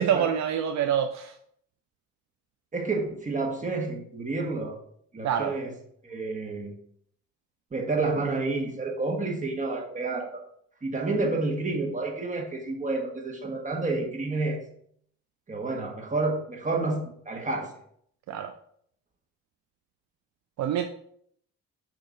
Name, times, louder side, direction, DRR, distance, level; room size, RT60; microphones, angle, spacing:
voice 1, 0.0-1.3 5.2-5.6 18.3-18.5 20.6-20.8, right 9 dB, 65° right, 7 dB, 0.5 m, -26 dB
voice 2, 2.7-4.8 5.1-5.7 6.0-6.7 7.7-10.4 10.8-14.6 15.5-17.7, right 3 dB, 25° right, 1 dB, 1.4 m, -29 dB
6.6 x 2.9 x 4.8 m, 0.67 s
cardioid pair, 90°, 30 cm